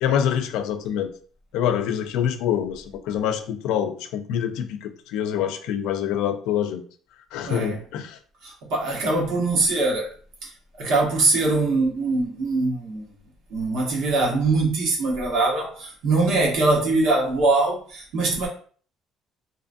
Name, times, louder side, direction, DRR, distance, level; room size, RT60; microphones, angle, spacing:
voice 1, 0.0-1.1 1.5-6.8 7.3-8.2, left 9 dB, 85° left, 0.3 m, -25 dB
voice 2, 7.4-7.8 8.4-10.1 10.4-13.1 13.5-18.5, right 3 dB, 70° right, 1.1 m, -22 dB
2.9 x 2.4 x 2.5 m
cardioid pair, 150°, 0 cm